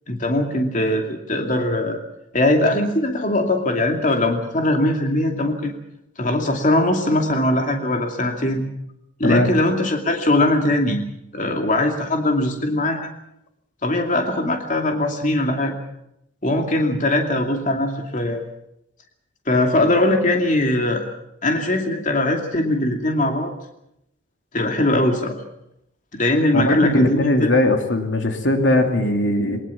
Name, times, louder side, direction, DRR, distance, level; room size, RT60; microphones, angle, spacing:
voice 1, 0.1-2.0 2.3-5.7 6.2-8.6 9.2-11.0 11.3-13.1 13.8-15.7 16.4-18.4 19.5-21.0 21.4-23.5 24.5-25.3 26.1-27.5, left 1 dB, 40° left, 3 dB, 2.5 m, -20 dB
voice 2, 26.5-29.6, left 1 dB, 75° left, 4 dB, 2.8 m, -19 dB
22.5 x 20.0 x 7.1 m, 0.80 s
head